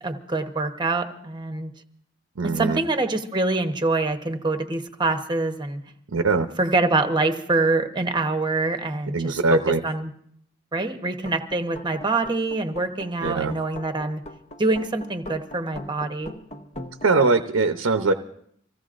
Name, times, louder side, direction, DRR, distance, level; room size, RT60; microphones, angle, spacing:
voice 1, 0.0-1.7 2.4-5.8 6.6-10.1 10.7-14.2 14.6-16.3, right 3 dB, 20° right, 6 dB, 0.9 m, -25 dB
voice 2, 2.4-2.8 6.1-6.5 9.1-9.8 13.2-13.6 17.0-18.1, right 3 dB, 90° right, 7 dB, 0.7 m, -21 dB
sound 1, 11.2-17.1, left 1 dB, 35° left, 0.8 m, -41 dB
26.0 x 16.0 x 2.5 m, 0.68 s
head